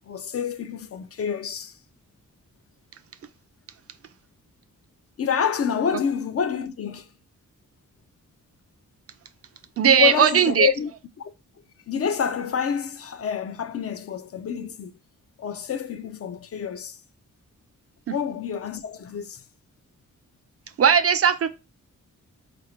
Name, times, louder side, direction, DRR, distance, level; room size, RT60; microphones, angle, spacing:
voice 1, 0.1-1.8 5.2-7.1 9.8-10.9 11.9-14.9 15.4-17.0 18.1-19.4, left 7 dB, 50° left, 0.4 m, -28 dB
voice 2, 9.8-10.7 20.8-21.5, right 8 dB, 50° right, 0.4 m, -18 dB
4.1 x 2.6 x 2.9 m
cardioid pair, 85°, 32 cm